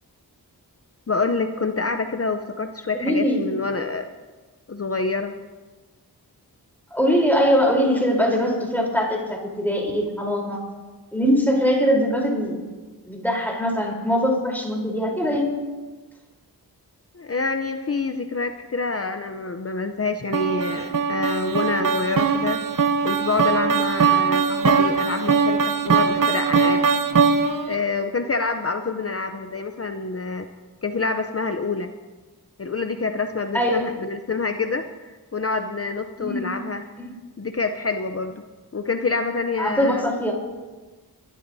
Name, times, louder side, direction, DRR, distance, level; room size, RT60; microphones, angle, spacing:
voice 1, 1.1-4.1 4.7-5.3 17.1-22.6 23.0-26.8 27.7-30.5 30.8-31.9 32.6-36.8 37.4-38.4 38.7-40.1, left 3 dB, 35° left, 7 dB, 0.7 m, -27 dB
voice 2, 2.9-3.4 6.9-10.6 11.1-12.6 13.1-15.5 33.5-33.9 36.2-36.4 37.0-37.1 39.6-40.3, equal, 5° left, -1 dB, 3.8 m, -22 dB
sound 1, 20.3-27.8, right 5 dB, 50° right, 0.8 m, -21 dB
22.0 x 12.5 x 2.8 m, 1.3 s
cardioid pair, 45°, 40 cm